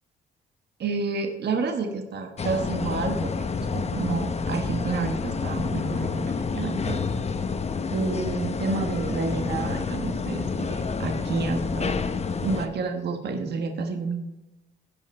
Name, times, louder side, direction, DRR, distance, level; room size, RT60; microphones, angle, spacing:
voice 1, 0.8-3.5 3.7-7.0 7.9-12.0 12.4-14.2, right 4 dB, 55° right, 5 dB, 1.2 m, -29 dB
sound 1, 2.4-12.7, left 5 dB, 30° left, 0.8 m, -29 dB
16.0 x 5.4 x 4.4 m, 0.99 s
cardioid pair, 90°, 20 cm